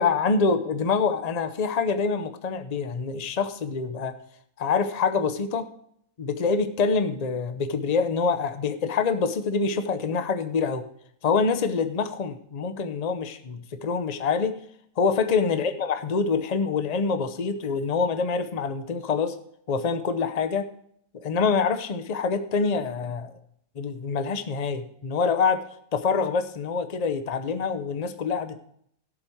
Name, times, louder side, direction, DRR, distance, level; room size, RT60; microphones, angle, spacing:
voice 1, 0.0-4.2 4.6-5.7 6.2-10.8 11.2-14.5 15.0-19.4 19.7-20.7 21.2-23.3 23.8-25.6 25.9-28.6, left 5 dB, 85° left, 9 dB, 0.3 m, -25 dB
13.5 x 7.4 x 4.6 m, 0.68 s
omnidirectional pair, 2.0 m